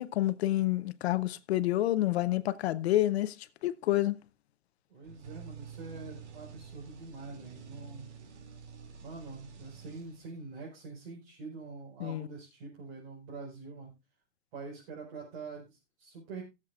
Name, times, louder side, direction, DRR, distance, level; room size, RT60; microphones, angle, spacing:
voice 1, 0.0-3.4 3.6-4.2 12.0-12.3, left 14 dB, 65° left, 0.7 m, -28 dB
voice 2, 4.9-8.1 9.0-13.9 14.5-16.4, right 4 dB, 55° right, 4.7 m, -45 dB
sound 1, 5.0-10.5, right 6 dB, 80° right, 2.6 m, -49 dB
20.5 x 7.5 x 2.4 m
supercardioid pair, 165°, 35 cm